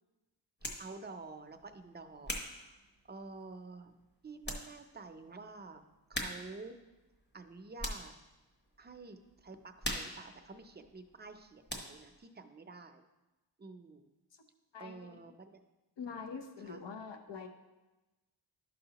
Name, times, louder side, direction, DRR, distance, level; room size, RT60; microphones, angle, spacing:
sound 1, 0.6-0.9 1.5-3.5 4.0-4.1 4.4-4.7 5.0-5.1 6.1-6.6 6.9-8.2 8.7-9.0 9.2-11.4 11.7-12.2, equal, 25° left, 1.0 m, -41 dB
voice 1, 0.8-2.8 3.0-5.8 6.1-6.8 7.3-8.1 8.8-13.0 13.6-14.1 14.8-15.6 16.6-16.8, right 3 dB, 25° right, 6 dB, 0.5 m, -49 dB
voice 2, 14.7-15.2 16.0-17.5, left 5 dB, 70° left, 6 dB, 0.9 m, -44 dB
12.0 x 5.5 x 2.9 m, 1.1 s
wide cardioid pair, 135°, 45 cm